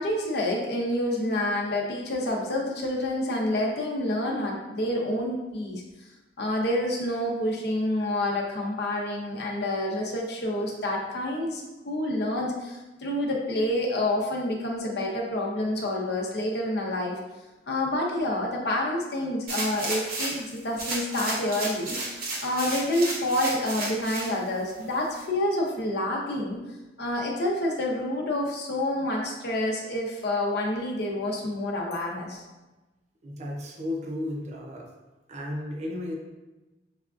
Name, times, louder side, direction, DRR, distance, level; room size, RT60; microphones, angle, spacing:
voice 1, 0.0-5.8 6.4-17.2 17.7-22.0 22.4-26.6 27.0-32.4, left 1 dB, 65° left, -1 dB, 0.7 m, -28 dB
sound 1, 19.5-20.5 20.8-24.3 24.8-24.9, right 2 dB, 55° right, 0.9 m, -32 dB
voice 2, 33.2-34.9 35.3-36.2, left 1 dB, 40° right, 1 dB, 0.5 m, -34 dB
5.7 x 2.3 x 2.4 m, 1.1 s
head